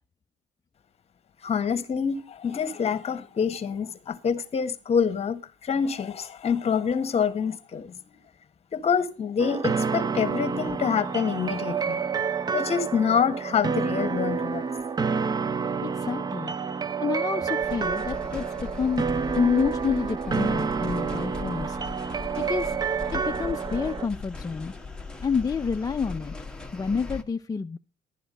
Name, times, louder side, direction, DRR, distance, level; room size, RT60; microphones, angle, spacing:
voice 1, 1.4-8.0 8.7-12.0 12.5-14.6, left 6 dB, 40° left, 1.5 m, -26 dB
sound 1, 9.4-24.1, right 5 dB, 25° right, 0.5 m, -29 dB
voice 2, 15.8-16.5 17.0-18.4 18.7-19.0 19.4-21.8 22.4-22.7 23.1-24.7 25.2-26.3 26.7-27.8, left 5 dB, 20° left, 0.6 m, -28 dB
sound 2, 17.6-27.2, left 4 dB, 5° left, 1.4 m, -39 dB
12.0 x 10.5 x 5.2 m
cardioid pair, 110°, 17 cm